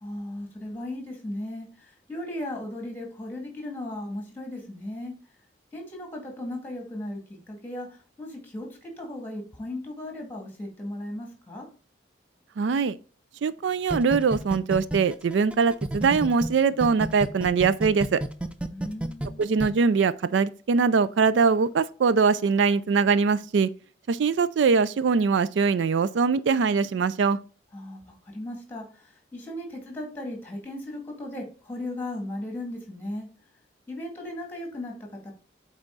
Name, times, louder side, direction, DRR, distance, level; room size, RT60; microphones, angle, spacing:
voice 1, 0.0-5.1 5.7-7.2 7.5-11.7 18.7-19.4 27.7-33.3 33.9-34.9 35.2-35.3, left 1 dB, 10° left, 2.2 m, -36 dB
voice 2, 12.6-13.0 13.4-18.2 19.4-23.7 24.1-27.4, right 5 dB, 80° right, 0.4 m, -22 dB
sound 1, 13.9-16.5 16.8-19.7, right 1 dB, 5° right, 0.4 m, -30 dB
8.0 x 4.3 x 3.9 m
head